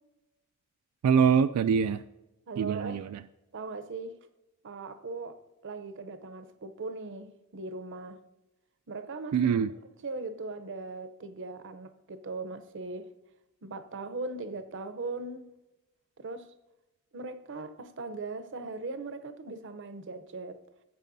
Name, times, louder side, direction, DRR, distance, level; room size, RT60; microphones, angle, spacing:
voice 1, 1.0-2.0 2.6-3.2 9.3-9.7, right 7 dB, 85° right, 0.3 m, -24 dB
voice 2, 2.5-3.0 3.5-4.2 4.6-8.2 8.9-9.4 10.0-13.1 13.6-15.5 16.2-16.5 17.1-20.6, right 3 dB, 55° right, 0.7 m, -39 dB
14.0 x 8.3 x 2.7 m
head